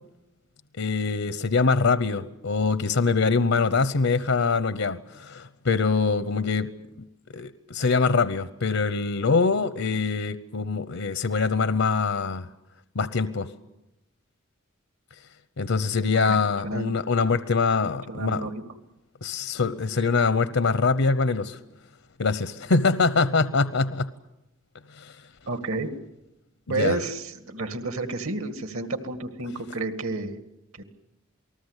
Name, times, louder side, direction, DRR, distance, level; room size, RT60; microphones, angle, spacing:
voice 1, 0.8-6.7 7.0-7.1 7.3-12.5 12.9-13.5 15.6-18.5 19.2-21.6 22.2-24.1 25.0-25.1 26.7-27.0, left 4 dB, 80° left, 13 dB, 0.9 m, -24 dB
voice 2, 16.2-16.9 18.1-18.6 25.5-25.9 26.7-30.4 30.8-30.9, right 3 dB, 75° right, 8 dB, 2.2 m, -30 dB
28.0 x 19.5 x 8.2 m, 0.91 s
head